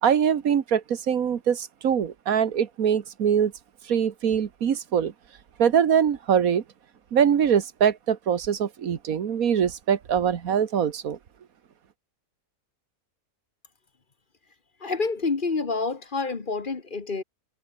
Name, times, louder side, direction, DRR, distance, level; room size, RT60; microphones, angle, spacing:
voice 1, 0.0-3.5 3.9-5.1 5.6-6.6 7.1-11.2, right 8 dB, 90° right, 1.7 m, -23 dB
voice 2, 14.8-17.2, left 4 dB, 40° left, 1.4 m, -28 dB
omnidirectional pair, 1.5 m